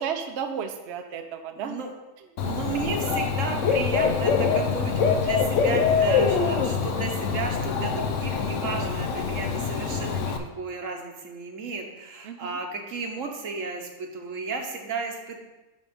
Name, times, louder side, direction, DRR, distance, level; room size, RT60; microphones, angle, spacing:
voice 1, 0.0-1.8 2.2-2.3 5.2-5.4 8.7-9.0 12.2-12.6, right 7 dB, 65° right, 5 dB, 0.8 m, -34 dB
voice 2, 1.6-1.9 2.4-15.4, right 4 dB, 80° right, 2 dB, 1.4 m, -33 dB
Dog / Bird, 2.4-10.4, left 6 dB, 75° left, 1.0 m, -24 dB
9.2 x 3.5 x 5.2 m, 1.1 s
omnidirectional pair, 1.3 m